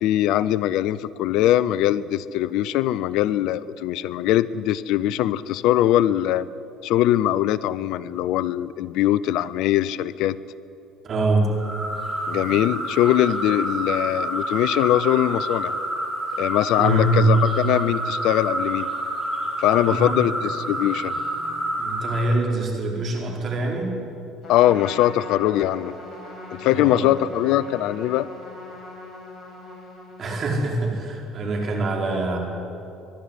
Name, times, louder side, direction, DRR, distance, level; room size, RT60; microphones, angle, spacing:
voice 1, 0.0-6.5 6.8-10.4 12.3-15.7 16.4-18.9 19.6-21.1 24.5-25.9 26.6-28.3, left 13 dB, 70° left, 18 dB, 0.6 m, -21 dB
voice 2, 11.0-11.5 16.8-17.2 19.8-20.2 21.8-24.0 26.6-27.1 30.2-32.4, right 2 dB, 45° right, 0 dB, 5.0 m, -24 dB
sound 1, 11.5-22.4, right 1 dB, 10° right, 7.0 m, -28 dB
Trumpet, 24.4-30.6, left 2 dB, 40° left, 6.3 m, -40 dB
22.5 x 12.0 x 9.9 m, 2.7 s
hypercardioid pair, 65°, 0 cm